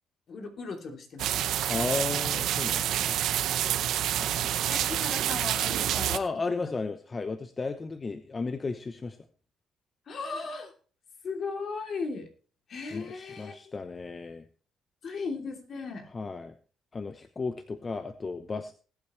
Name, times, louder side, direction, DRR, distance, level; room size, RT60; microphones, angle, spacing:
voice 1, 0.3-1.5 3.8-6.6 10.1-10.7 11.2-12.3 12.7-13.7 15.0-16.1, left 4 dB, 55° left, 3 dB, 3.0 m, -37 dB
sound 1, 1.2-6.2, right 11 dB, 80° right, 0.7 m, -28 dB
voice 2, 1.7-3.2 4.4-4.6 6.1-9.2 12.9-14.5 16.1-16.5 16.9-18.7, left 4 dB, 30° left, 10 dB, 0.8 m, -34 dB
19.5 x 8.8 x 3.2 m, 0.40 s
cardioid pair, 90°, 0 cm